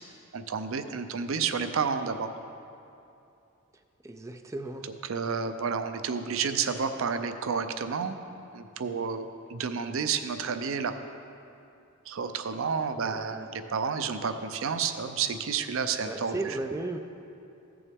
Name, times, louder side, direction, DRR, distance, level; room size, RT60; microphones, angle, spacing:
voice 1, 0.3-2.3 5.0-8.2 8.5-10.9 12.1-16.6, right 6 dB, 70° right, 9 dB, 0.5 m, -30 dB
voice 2, 4.0-4.9 13.0-13.5 16.0-17.0, right 2 dB, 15° right, 6 dB, 0.3 m, -35 dB
14.5 x 6.9 x 3.5 m, 2.7 s
head